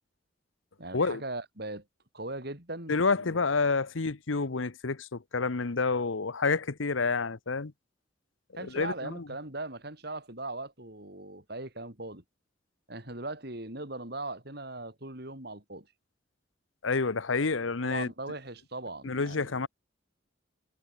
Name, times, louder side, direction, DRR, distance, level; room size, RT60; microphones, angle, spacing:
voice 1, 0.8-1.9 2.1-3.4 8.5-12.2 12.9-15.9 17.8-19.5, right 2 dB, 55° right, 5.3 m, -39 dB
voice 2, 2.9-7.7 8.7-9.3 16.8-18.1 19.0-19.7, left 4 dB, 85° left, 1.0 m, -29 dB
head